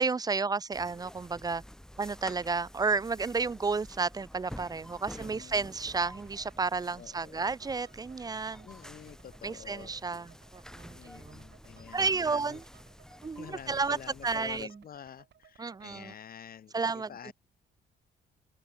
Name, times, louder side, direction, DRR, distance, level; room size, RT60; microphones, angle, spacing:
voice 1, 0.0-1.6 2.0-8.7 9.4-11.4 11.9-12.6 13.2-14.0 14.2-14.7 15.6-16.1 16.7-17.3, right 4 dB, 20° right, 0.4 m, -32 dB
sound 1, 0.7-14.7, equal, 5° left, 1.7 m, -50 dB
voice 2, 5.1-5.7 7.0-7.5 8.6-9.9 10.9-12.6 13.4-17.3, left 8 dB, 45° left, 0.7 m, -48 dB
sound 2, 5.3-15.9, right 9 dB, 60° right, 2.8 m, -62 dB
open air
cardioid pair, 90°, 20 cm